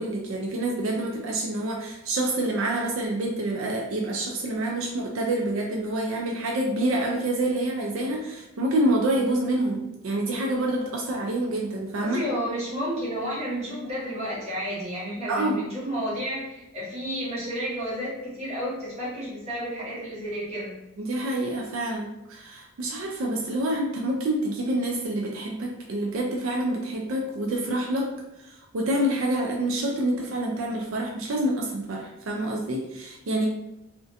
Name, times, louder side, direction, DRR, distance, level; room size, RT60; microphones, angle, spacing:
voice 1, 0.0-12.2 15.3-15.6 21.0-28.1 28.5-33.5, right 1 dB, 80° right, -1 dB, 0.4 m, -27 dB
voice 2, 12.0-20.7, equal, 30° right, -8 dB, 1.0 m, -31 dB
2.4 x 2.1 x 2.6 m, 0.91 s
head